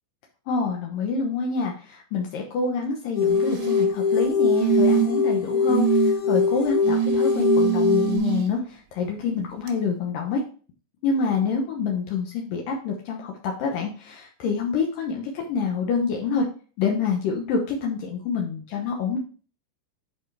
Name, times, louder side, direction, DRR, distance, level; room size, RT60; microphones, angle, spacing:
voice 1, 0.5-10.4 11.0-16.4 16.8-19.2, left 5 dB, 80° left, 1 dB, 1.9 m, -27 dB
sound 1, 3.2-8.2, left 5 dB, 60° left, 3.7 m, -22 dB
sound 2, 3.3-3.9 4.6-5.3 5.7-6.1 6.8-8.4 9.7-9.8, right 13 dB, 80° right, 3.2 m, -24 dB
10.0 x 4.5 x 3.3 m, 0.39 s
omnidirectional pair, 5.3 m